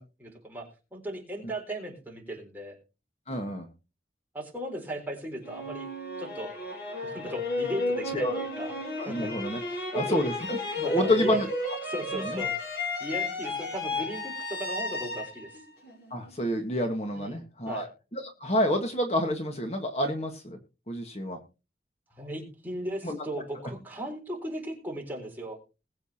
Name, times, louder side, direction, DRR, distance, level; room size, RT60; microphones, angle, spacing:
voice 1, 0.0-2.8 4.3-5.9 6.2-6.5 7.0-8.8 9.0-9.3 9.7-10.2 10.8-11.4 11.8-12.5 13.0-15.6 17.1-17.9 22.1-25.6, right 1 dB, 10° right, -1 dB, 3.8 m, -37 dB
voice 2, 3.3-3.7 8.1-8.4 9.0-9.6 9.9-11.5 12.2-12.4 16.1-20.6 20.9-21.4 23.0-23.2, equal, 35° left, 4 dB, 1.5 m, -29 dB
sound 1, 5.4-16.5, left 2 dB, 65° left, 6.0 m, -33 dB
21.0 x 7.8 x 2.9 m, 0.30 s
head